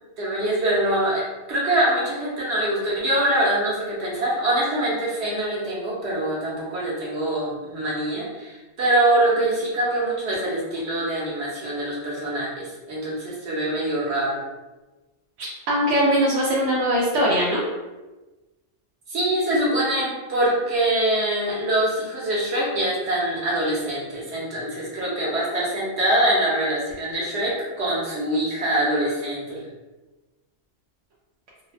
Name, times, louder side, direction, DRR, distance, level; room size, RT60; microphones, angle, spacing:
voice 1, 0.2-14.4 19.1-29.6, right 1 dB, 70° right, -5 dB, 1.1 m, -24 dB
voice 2, 15.4-17.6, equal, 90° right, -6 dB, 0.9 m, -21 dB
2.7 x 2.1 x 2.4 m, 1.1 s
omnidirectional pair, 1.2 m